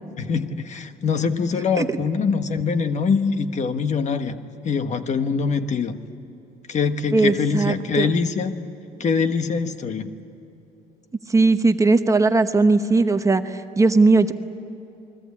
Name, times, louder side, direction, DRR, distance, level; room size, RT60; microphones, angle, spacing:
voice 1, 0.2-4.4 4.6-6.0 6.7-8.5 9.0-10.1, left 5 dB, 45° left, 9 dB, 1.3 m, -23 dB
voice 2, 7.1-8.1 11.3-14.3, right 3 dB, 20° right, 8 dB, 0.9 m, -18 dB
29.0 x 20.5 x 8.5 m, 3.0 s
cardioid pair, 110°, 17 cm